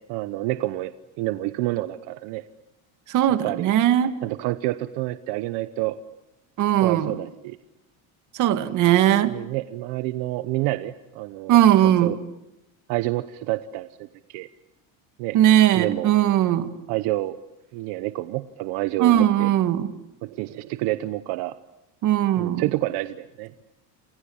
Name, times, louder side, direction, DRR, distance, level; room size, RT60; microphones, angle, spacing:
voice 1, 0.1-2.4 3.4-3.7 4.2-6.0 6.8-7.6 9.2-11.6 11.8-12.2 12.9-14.5 15.2-15.4 15.7-16.1 16.9-17.4 17.7-19.5 20.2-21.6 22.4-23.5, right 17 dB, 75° right, 12 dB, 1.1 m, -28 dB
voice 2, 3.1-4.1 6.6-7.1 8.3-9.3 11.5-12.1 15.3-16.7 19.0-19.9 22.0-22.6, right 12 dB, 45° right, 10 dB, 2.0 m, -19 dB
28.5 x 28.0 x 7.2 m, 0.91 s
cardioid pair, 155°, 41 cm